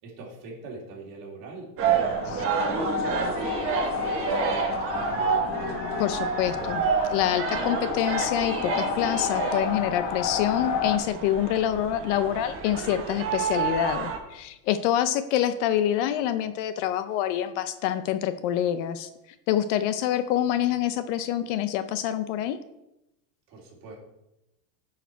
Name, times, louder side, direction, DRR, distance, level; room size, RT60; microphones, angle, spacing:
voice 1, 0.0-1.8 2.2-2.9 3.6-5.4 23.5-24.0, right 3 dB, 45° right, -2 dB, 2.9 m, -43 dB
sound 1, 1.8-14.2, right 6 dB, 30° right, 1.2 m, -29 dB
sound 2, 1.9-11.0, left 6 dB, 80° left, 1.3 m, -31 dB
voice 2, 6.0-6.8 7.1-19.1 19.5-22.6, left 11 dB, 50° left, 12 dB, 0.5 m, -26 dB
9.0 x 4.8 x 4.5 m, 0.90 s
supercardioid pair, 150°, 47 cm